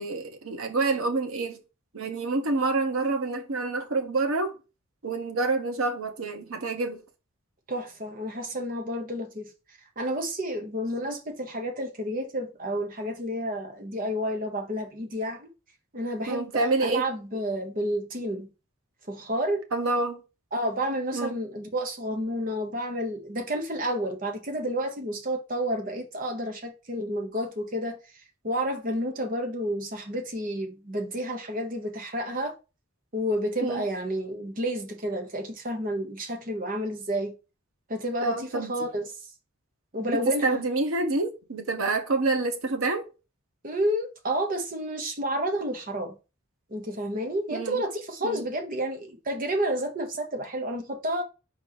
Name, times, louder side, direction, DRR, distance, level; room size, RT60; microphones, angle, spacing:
voice 1, 0.0-1.6 1.9-4.5 5.0-7.0 16.3-17.1 19.7-20.2 21.1-21.3 33.6-33.8 38.2-38.7 40.4-43.1 47.5-47.8 48.2-48.4, right 3 dB, 90° right, 1.0 m, -27 dB
voice 2, 7.7-9.5 10.0-15.5 15.9-18.5 19.1-19.6 20.5-28.0 28.4-32.6 33.1-37.4 37.9-39.3 39.9-40.6 43.6-46.2 46.7-51.2, equal, 40° right, 1.0 m, -30 dB
4.4 x 3.1 x 3.9 m
head